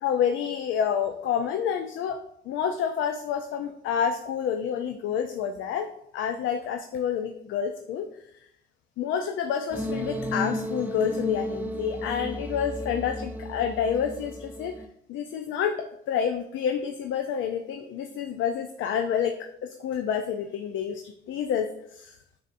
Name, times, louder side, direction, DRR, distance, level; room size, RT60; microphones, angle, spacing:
voice 1, 0.0-2.2 2.5-5.9 6.1-8.1 9.0-14.7 15.1-15.8 16.1-19.3 19.6-21.7 21.9-22.2, left 8 dB, 75° left, 6 dB, 0.4 m, -28 dB
sound 1, 9.7-14.9, equal, 10° right, 0.5 m, -33 dB
7.0 x 2.7 x 2.5 m, 0.74 s
cardioid pair, 90°, 20 cm